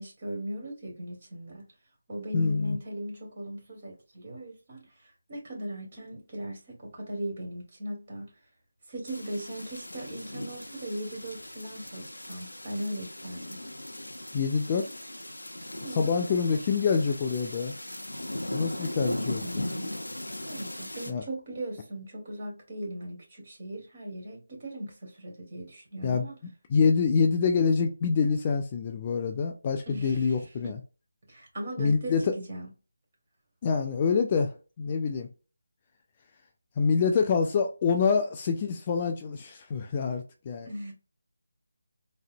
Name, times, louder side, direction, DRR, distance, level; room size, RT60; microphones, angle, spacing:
voice 1, 0.0-1.7 2.1-8.3 8.9-13.6 15.7-16.1 18.8-20.0 20.4-26.4 29.9-30.8 31.3-32.7 40.7-40.9, right 1 dB, 35° right, 1.7 m, -38 dB
voice 2, 2.3-2.8 14.3-14.9 15.9-17.7 18.5-19.6 21.1-21.2 26.0-26.3 26.7-30.8 31.8-32.3 33.6-35.3 36.8-40.7, left 5 dB, 25° left, 0.4 m, -26 dB
sound 1, 9.1-21.1, left 1 dB, 90° left, 0.6 m, -38 dB
3.8 x 2.1 x 2.5 m
figure-of-eight pair, 160°, 0 cm